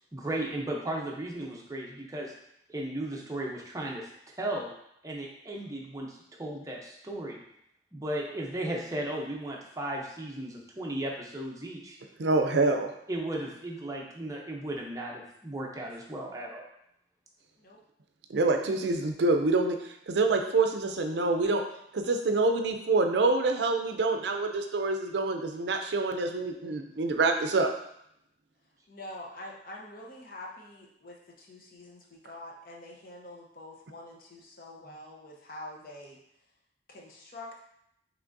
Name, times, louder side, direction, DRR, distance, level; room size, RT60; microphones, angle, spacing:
voice 1, 0.1-2.3 2.7-4.0 4.4-4.7 5.0-6.1 6.4-7.4 7.9-12.0 13.1-16.6, right 1 dB, 20° right, -1 dB, 0.7 m, -35 dB
voice 2, 12.2-12.9 18.3-21.6 21.9-27.7, right 3 dB, 65° right, 5 dB, 0.5 m, -26 dB
voice 3, 28.9-36.2 36.9-37.6, left 1 dB, 50° left, -1 dB, 0.8 m, -46 dB
6.0 x 3.1 x 2.6 m, 0.75 s
head